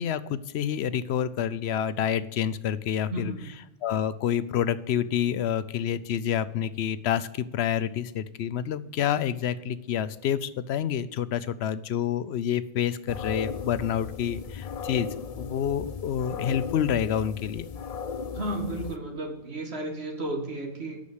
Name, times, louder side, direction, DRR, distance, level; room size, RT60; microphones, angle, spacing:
voice 1, 0.0-3.3 3.8-15.1 15.4-17.7, left 9 dB, 90° left, 15 dB, 0.9 m, -28 dB
voice 2, 3.1-3.5 18.3-21.0, right 1 dB, 90° right, 2 dB, 2.3 m, -33 dB
sound 1, 13.1-19.0, left 6 dB, 45° left, 0.5 m, -36 dB
8.5 x 6.4 x 8.0 m, 0.92 s
omnidirectional pair, 1.0 m